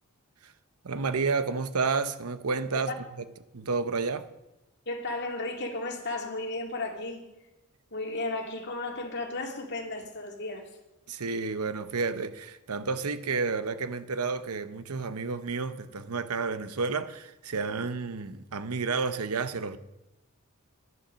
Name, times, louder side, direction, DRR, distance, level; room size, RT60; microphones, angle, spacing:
voice 1, 0.8-3.2 3.5-4.3 11.1-19.8, right 4 dB, 90° right, 0.8 m, -31 dB
voice 2, 4.9-7.3 7.9-10.7, left 2 dB, 50° left, 2.2 m, -34 dB
11.5 x 11.0 x 6.3 m
head